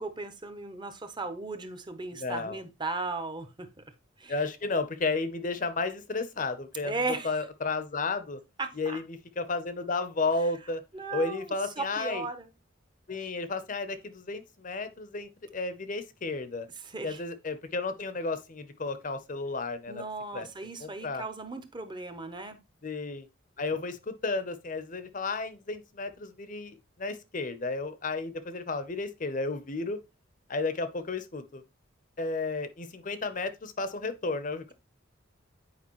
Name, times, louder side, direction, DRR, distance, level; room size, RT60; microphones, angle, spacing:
voice 1, 0.0-3.7 4.2-4.4 6.8-7.4 8.6-9.0 10.9-12.5 13.2-13.3 16.8-17.2 19.9-22.6, right 3 dB, 25° right, 0.8 m, -36 dB
voice 2, 2.1-2.6 4.3-8.4 8.8-10.8 11.1-12.3 13.1-16.7 17.0-20.0 20.3-20.5 20.8-21.2 22.8-23.3 23.6-30.0 30.5-31.6 32.2-34.7, left 3 dB, 40° left, 0.7 m, -33 dB
8.5 x 4.9 x 3.0 m
head